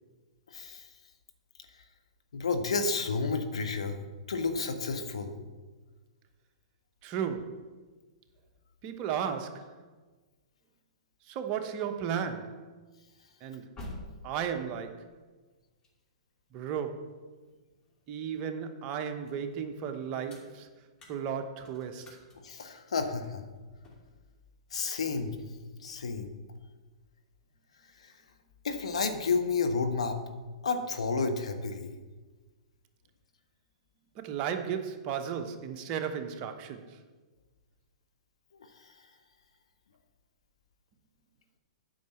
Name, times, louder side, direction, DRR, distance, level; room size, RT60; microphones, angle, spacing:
voice 1, 0.5-0.9 2.3-4.0 4.3-5.4 22.4-23.4 24.7-25.3 25.8-26.3 28.0-28.1 28.6-30.2 30.6-31.9 38.8-38.9, left 4 dB, 75° left, 1.2 m, -31 dB
voice 2, 7.0-7.6 8.8-9.8 11.3-12.7 13.4-13.7 14.2-15.1 16.5-17.2 18.1-20.7 21.1-22.2 34.1-37.0, right 8 dB, 35° right, 1.0 m, -35 dB
sound 1, 13.3-18.3 18.7-24.2, left 1 dB, 20° left, 2.5 m, -51 dB
9.2 x 5.7 x 7.0 m
hypercardioid pair, 115°, 3 cm